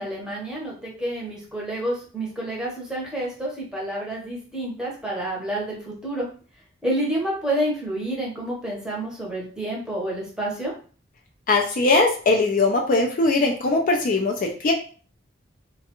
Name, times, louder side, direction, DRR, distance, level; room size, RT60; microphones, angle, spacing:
voice 1, 0.0-6.3 6.8-10.7, right 1 dB, 5° right, -4 dB, 0.8 m, -29 dB
voice 2, 11.5-14.7, left 3 dB, 45° left, 2 dB, 0.4 m, -20 dB
2.3 x 2.3 x 2.9 m, 0.41 s
head